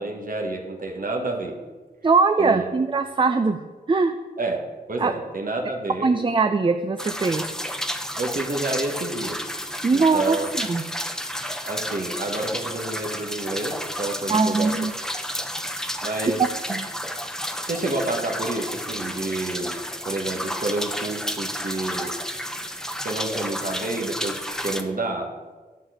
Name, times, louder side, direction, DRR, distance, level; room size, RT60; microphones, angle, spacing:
voice 1, 0.0-1.6 2.4-2.7 4.4-4.6 4.9-6.1 8.2-9.4 9.9-10.5 11.6-14.7 16.0-16.4 17.7-19.8 20.0-22.1 23.0-25.3, right 2 dB, 55° right, 1 dB, 1.3 m, -29 dB
voice 2, 2.0-3.6 3.9-4.2 5.0-5.1 6.0-7.5 9.8-10.8 14.3-14.9 16.7-16.9, right 4 dB, 30° right, 8 dB, 0.5 m, -21 dB
sound 1, 7.0-24.8, equal, 5° left, 0.8 m, -31 dB
11.0 x 4.1 x 7.8 m, 1.3 s
wide cardioid pair, 90°, 17 cm